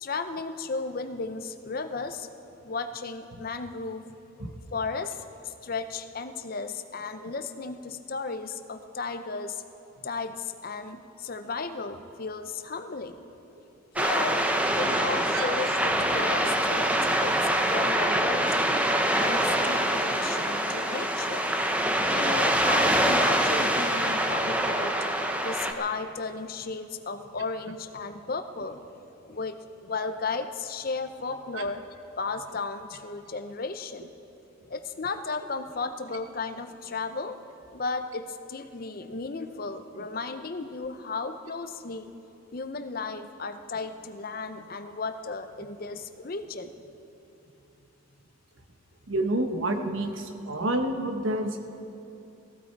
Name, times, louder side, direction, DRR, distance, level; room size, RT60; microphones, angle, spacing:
voice 1, 0.0-2.3 2.6-4.1 4.7-9.6 10.0-13.2 14.0-14.5 14.7-18.8 19.2-21.5 22.1-25.0 25.4-28.8 29.2-31.8 32.2-34.1 34.7-37.4 37.7-42.1 42.5-46.7, left 4 dB, 45° left, 9 dB, 0.6 m, -34 dB
sound 1, 14.0-25.7, right 1 dB, 5° right, 0.7 m, -25 dB
voice 2, 49.1-51.8, right 1 dB, 70° right, 5 dB, 1.1 m, -29 dB
17.5 x 15.0 x 4.6 m, 2.8 s
head